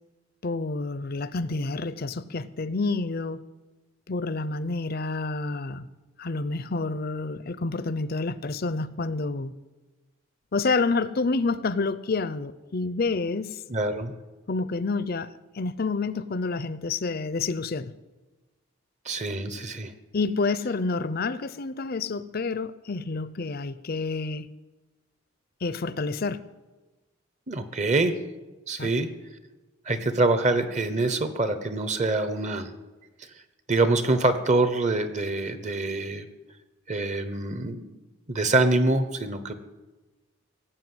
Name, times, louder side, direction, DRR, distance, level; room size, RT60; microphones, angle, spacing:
voice 1, 0.4-3.4 4.1-5.9 6.2-9.5 10.5-13.6 14.5-15.3 15.5-17.9 20.1-24.5 25.6-26.4 28.8-28.9, left 3 dB, 50° left, 15 dB, 0.6 m, -28 dB
voice 2, 13.7-14.1 19.1-19.9 27.5-28.2 28.7-29.1 29.9-32.7 33.7-36.3 36.9-39.5, right 2 dB, 35° right, 11 dB, 1.0 m, -25 dB
17.0 x 7.9 x 7.9 m, 1.2 s
head